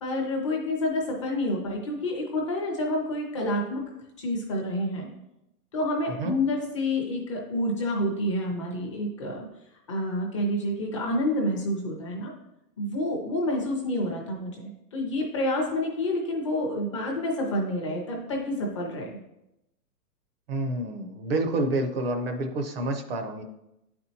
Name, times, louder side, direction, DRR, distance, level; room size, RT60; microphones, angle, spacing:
voice 1, 0.0-3.8 4.2-5.1 5.7-9.5 9.9-12.3 12.8-19.2, left 1 dB, 20° left, -1 dB, 0.5 m, -28 dB
voice 2, 20.5-23.4, right 2 dB, 40° right, 5 dB, 0.6 m, -28 dB
8.7 x 4.3 x 2.7 m, 0.87 s
hypercardioid pair, 155°, 48 cm